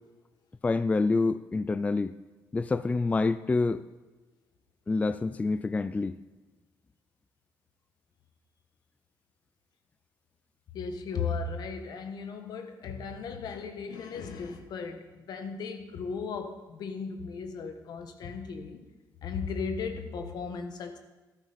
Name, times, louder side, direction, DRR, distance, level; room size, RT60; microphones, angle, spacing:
voice 1, 0.6-2.1 2.5-3.8 4.9-6.2, left 3 dB, 20° left, 14 dB, 0.3 m, -27 dB
voice 2, 10.7-18.8 19.2-21.0, left 5 dB, 70° left, 7 dB, 1.3 m, -36 dB
12.5 x 11.0 x 4.1 m, 1.2 s
cardioid pair, 95°, 7 cm